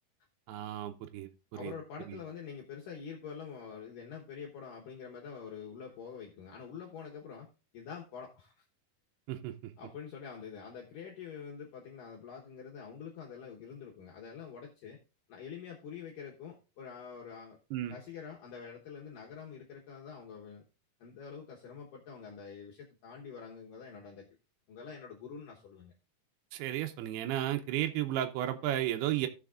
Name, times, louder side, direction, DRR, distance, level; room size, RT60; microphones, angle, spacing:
voice 1, 0.5-1.7 2.1-2.2 9.3-9.7 17.7-17.9 26.5-29.3, right 13 dB, 85° right, 2.7 m, -34 dB
voice 2, 1.5-7.5 7.7-8.6 9.8-15.0 15.3-17.6 17.9-20.7 21.0-24.3 24.7-25.9, left 6 dB, 65° left, 2.5 m, -46 dB
17.0 x 6.3 x 2.4 m
omnidirectional pair, 4.6 m